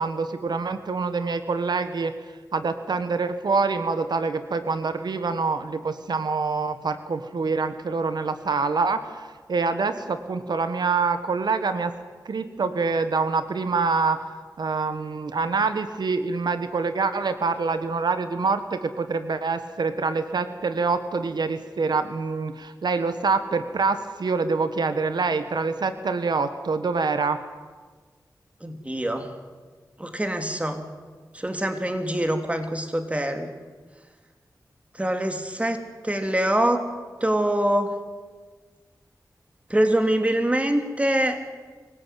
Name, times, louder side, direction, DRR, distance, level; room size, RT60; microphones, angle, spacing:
voice 1, 0.0-2.1 2.5-11.9 12.2-27.4, right 4 dB, 85° right, 10 dB, 1.4 m, -26 dB
voice 2, 28.6-29.3 30.0-30.9 31.3-33.5 35.0-36.8 37.2-37.9 39.7-41.4, right 1 dB, 20° right, 6 dB, 3.1 m, -24 dB
25.5 x 17.0 x 9.3 m, 1.4 s
wide cardioid pair, 70°, 7 cm